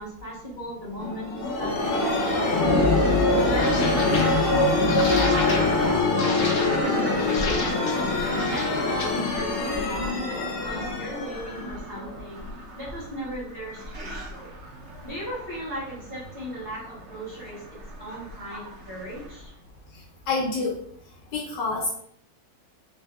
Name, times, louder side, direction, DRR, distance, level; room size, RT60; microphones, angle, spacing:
voice 1, 0.0-3.0 3.4-4.8 5.1-8.2 8.5-12.4 12.8-14.5 15.0-19.5, equal, 30° right, -11 dB, 2.0 m, -36 dB
sound 1, 1.0-12.5, left 2 dB, 60° left, 0.6 m, -23 dB
sound 2, 1.8-19.5, right 1 dB, 45° right, 1.0 m, -40 dB
voice 2, 20.3-20.7 21.3-21.9, left 3 dB, 80° left, -2 dB, 1.4 m, -26 dB
3.5 x 3.3 x 3.4 m, 0.66 s
omnidirectional pair, 1.9 m